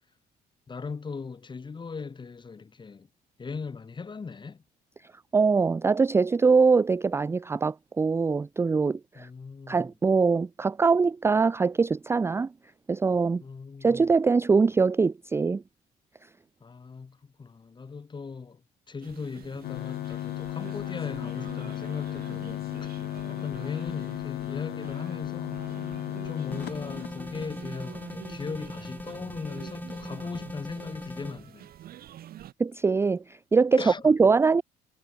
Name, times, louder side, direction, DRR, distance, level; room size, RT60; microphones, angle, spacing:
voice 1, 0.7-3.1 3.4-4.6 9.1-9.9 13.4-13.9 16.6-22.9 23.3-25.6 26.2-31.7 33.8-34.1, left 5 dB, 25° left, 5.9 m, -39 dB
voice 2, 5.3-9.3 9.7-12.5 12.9-13.4 13.8-15.6 32.6-34.6, right 4 dB, 15° right, 0.4 m, -23 dB
sound 1, 19.0-32.5, right 12 dB, 65° right, 6.0 m, -46 dB
sound 2, 19.6-27.7, left 15 dB, 70° left, 1.1 m, -35 dB
sound 3, 26.5-31.4, left 2 dB, 10° left, 2.7 m, -40 dB
cardioid pair, 110°, 17 cm